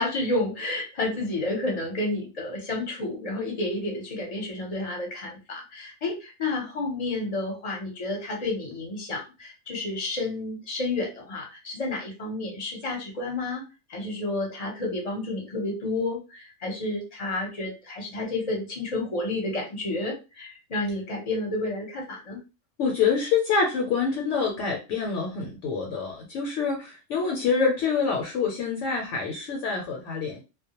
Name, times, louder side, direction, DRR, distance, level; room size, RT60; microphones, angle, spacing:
voice 1, 0.0-13.6 13.9-22.4, left 2 dB, 35° left, 1 dB, 0.7 m, -30 dB
voice 2, 22.8-30.4, left 5 dB, 70° left, 0 dB, 0.9 m, -26 dB
2.2 x 2.1 x 2.8 m, 0.29 s
omnidirectional pair, 1.4 m